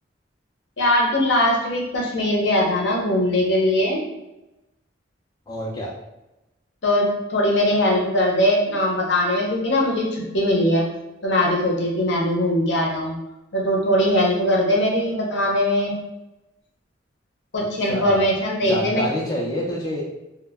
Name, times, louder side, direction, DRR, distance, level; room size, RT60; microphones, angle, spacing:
voice 1, 0.8-4.0 6.8-10.8 11.2-13.2 13.5-15.9 17.5-19.0, left 1 dB, 65° left, -2 dB, 0.7 m, -20 dB
voice 2, 5.5-5.9 17.9-18.3 18.7-20.0, equal, 20° left, -4 dB, 0.4 m, -27 dB
2.1 x 2.1 x 3.3 m, 0.97 s
head